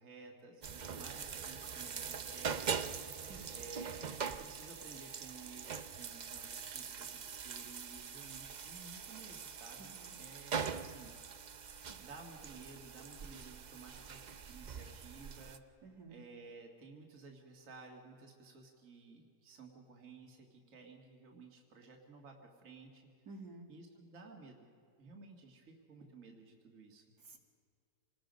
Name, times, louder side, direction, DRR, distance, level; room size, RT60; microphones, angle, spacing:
voice 1, 0.0-2.9 3.5-11.3 12.0-15.6 16.1-23.0 23.7-24.7 25.0-27.1, right 4 dB, 50° right, 1 dB, 2.3 m, -55 dB
sound 1, 0.6-15.6, right 6 dB, 90° right, 0.4 m, -43 dB
voice 2, 3.1-3.5 9.8-10.1 11.8-12.0 15.8-16.2 23.3-23.6 27.2-27.4, right 3 dB, 70° right, 0 dB, 2.7 m, -52 dB
26.5 x 19.5 x 5.2 m, 2.3 s
omnidirectional pair, 1.8 m